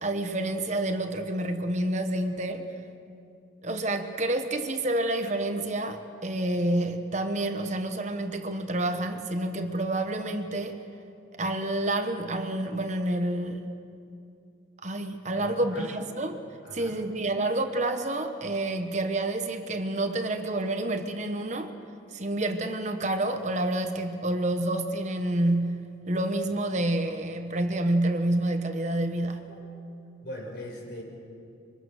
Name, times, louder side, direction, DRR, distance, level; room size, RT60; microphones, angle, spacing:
voice 1, 0.0-2.7 3.6-10.8 11.4-13.6 14.8-16.4 16.7-21.7 22.1-29.5, right 1 dB, 35° right, 6 dB, 1.2 m, -28 dB
voice 2, 15.4-16.0 16.6-17.0 29.5-29.6 30.2-31.0, left 1 dB, 55° left, 0 dB, 5.4 m, -40 dB
26.0 x 24.0 x 6.5 m, 2.5 s
head